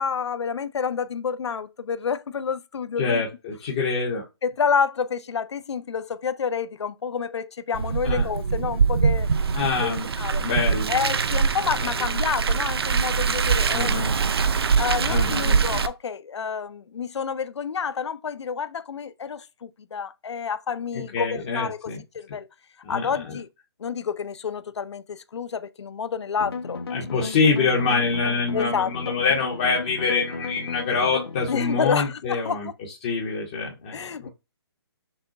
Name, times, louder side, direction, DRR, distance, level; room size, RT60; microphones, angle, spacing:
voice 1, 0.0-3.2 4.4-9.3 9.8-10.5 10.9-13.9 14.5-22.5 22.9-23.5 23.8-26.8 27.1-27.3 28.5-29.1 31.5-32.7 33.9-34.3, left 6 dB, 90° left, 0.5 m, -29 dB
voice 2, 3.0-4.2 8.0-8.3 9.5-10.1 10.4-10.9 11.8-11.9 13.7-14.1 15.1-15.6 20.9-22.0 22.8-23.4 26.9-32.7 33.0-34.3, left 4 dB, 10° left, 0.5 m, -25 dB
Car, 7.7-15.9, right 5 dB, 65° right, 0.6 m, -23 dB
sound 1, 26.4-31.9, left 4 dB, 65° left, 0.8 m, -34 dB
6.1 x 2.3 x 3.8 m
hypercardioid pair, 180°, 14 cm